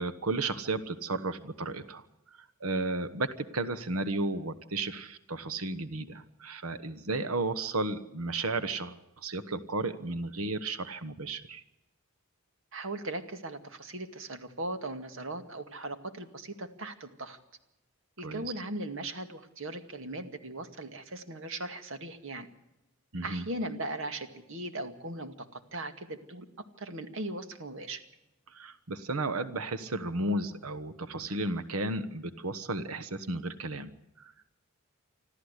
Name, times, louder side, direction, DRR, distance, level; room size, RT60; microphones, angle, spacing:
voice 1, 0.0-2.0 2.6-11.6 18.2-18.4 23.1-23.4 28.5-33.9 34.2-34.3, right 2 dB, 90° right, 12 dB, 1.2 m, -33 dB
voice 2, 12.7-17.4 18.2-22.5 23.2-26.5 26.8-28.0, right 1 dB, 65° right, 8 dB, 2.1 m, -38 dB
26.0 x 14.0 x 8.2 m, 0.92 s
head